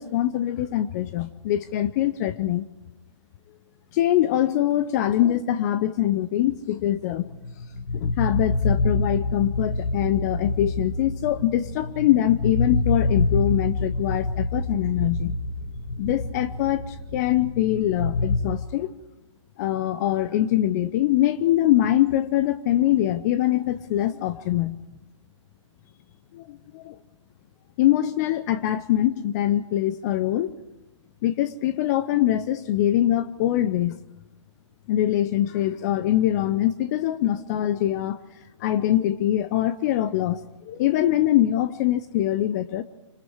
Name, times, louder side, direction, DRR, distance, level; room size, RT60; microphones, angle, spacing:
voice 1, 0.0-2.7 3.9-7.3 7.9-15.3 16.0-19.0 19.6-24.8 26.3-27.0 27.8-30.6 31.2-34.0 34.9-38.2 38.6-42.8, left 13 dB, 35° left, 14 dB, 0.7 m, -23 dB
sound 1, 7.3-18.4, left 2 dB, 85° left, 5.7 m, -26 dB
26.5 x 26.0 x 4.8 m, 0.93 s
figure-of-eight pair, 125°, 16 cm